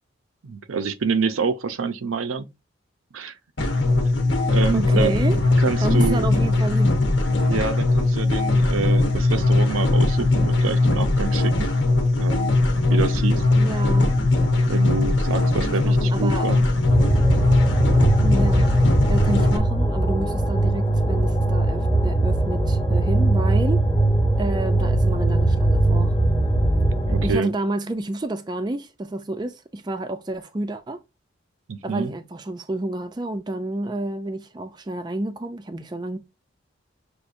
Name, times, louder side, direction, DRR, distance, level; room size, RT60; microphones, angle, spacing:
voice 1, 0.4-2.5 3.1-3.4 4.5-6.3 7.5-11.7 12.2-12.5 12.9-13.4 14.7-16.6 27.1-27.5 31.7-32.1, right 5 dB, 90° right, 0.6 m, -27 dB
sound 1, 3.6-19.6, left 2 dB, 65° left, 0.9 m, -20 dB
voice 2, 4.7-5.4 5.8-7.0 13.6-14.2 15.6-16.5 18.2-23.8 24.4-26.2 27.2-31.0 31.8-36.2, right 1 dB, 20° right, 0.4 m, -29 dB
sound 2, 16.9-27.3, right 2 dB, 20° left, 0.9 m, -20 dB
6.3 x 2.5 x 2.6 m
head